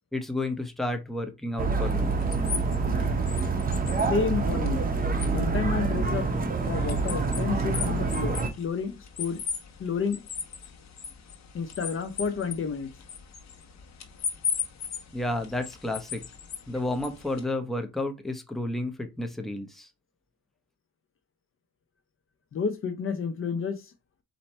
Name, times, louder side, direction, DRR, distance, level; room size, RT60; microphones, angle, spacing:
voice 1, 0.1-2.2 15.1-16.2 16.7-19.9, left 2 dB, ahead, 0.8 m, -31 dB
sound 1, 1.6-8.5, right 4 dB, 30° right, 0.8 m, -26 dB
sound 2, 1.8-17.4, left 6 dB, 60° left, 1.2 m, -38 dB
voice 2, 4.1-4.8 5.3-6.3 6.7-9.4 9.8-10.2 11.5-12.9 22.5-23.8, left 5 dB, 45° left, 0.7 m, -30 dB
4.3 x 2.8 x 4.2 m
cardioid pair, 90°, 30 cm